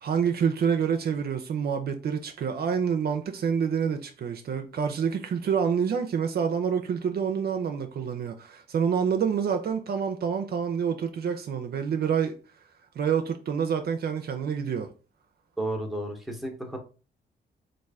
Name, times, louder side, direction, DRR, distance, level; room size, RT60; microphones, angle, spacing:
voice 1, 0.0-12.3 13.0-14.9, right 7 dB, 60° right, 0.5 m, -27 dB
voice 2, 15.6-16.8, right 1 dB, ahead, 1.0 m, -32 dB
3.1 x 2.5 x 3.4 m
cardioid pair, 60°, 18 cm